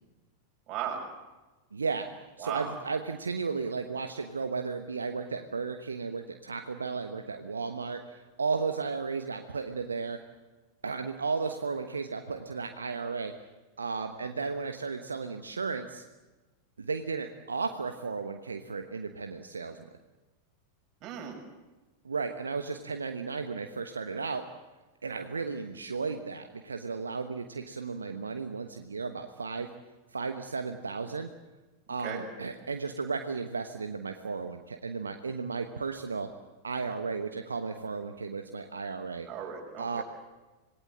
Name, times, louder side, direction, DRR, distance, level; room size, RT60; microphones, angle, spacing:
voice 1, 0.7-1.0 2.4-2.7 21.0-21.4 32.0-32.2 39.3-40.0, right 8 dB, 35° right, 1 dB, 6.3 m, -36 dB
voice 2, 1.7-2.1 2.4-10.2 10.8-13.3 13.8-16.0 16.8-19.8 22.0-24.4 25.0-29.7 30.1-31.3 31.9-36.3 36.6-39.3 39.8-40.0, right 4 dB, 75° right, 6 dB, 1.2 m, -34 dB
26.5 x 19.0 x 7.6 m, 1.2 s
figure-of-eight pair, 90°, 0 cm